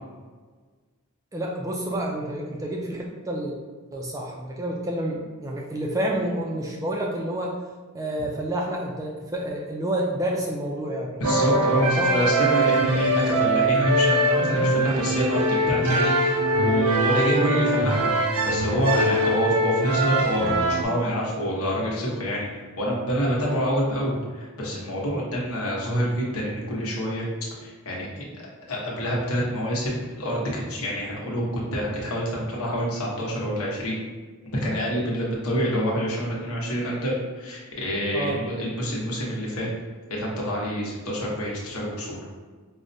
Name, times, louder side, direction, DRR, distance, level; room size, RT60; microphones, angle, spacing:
voice 1, 1.3-3.6 3.9-7.6 7.9-11.2 11.7-12.6 38.1-38.4, right 1 dB, 15° right, -1 dB, 0.3 m, -29 dB
voice 2, 11.2-22.5 22.8-27.2 27.6-28.2 28.7-34.0 34.4-39.7 40.1-42.2, equal, 80° left, -4 dB, 0.9 m, -27 dB
sound 1, 11.2-20.8, right 1 dB, 85° right, 0.4 m, -22 dB
4.7 x 2.1 x 2.6 m, 1.4 s
head